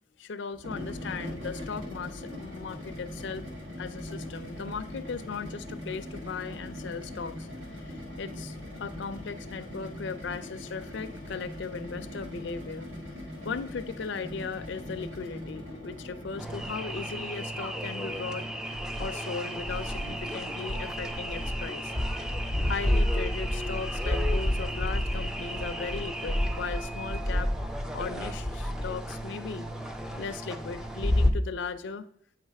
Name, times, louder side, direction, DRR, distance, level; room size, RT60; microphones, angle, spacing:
voice 1, 0.2-3.4 3.8-7.5 7.8-12.9 13.4-18.5 19.0-21.9 22.6-27.5 27.9-29.7 30.2-32.1, left 5 dB, 65° left, 9 dB, 0.4 m, -37 dB
sound 1, 0.5-17.0, left 1 dB, 80° right, 1.7 m, -41 dB
sound 2, 16.4-31.3, equal, 5° right, 0.4 m, -30 dB
8.5 x 3.2 x 4.6 m, 0.63 s
head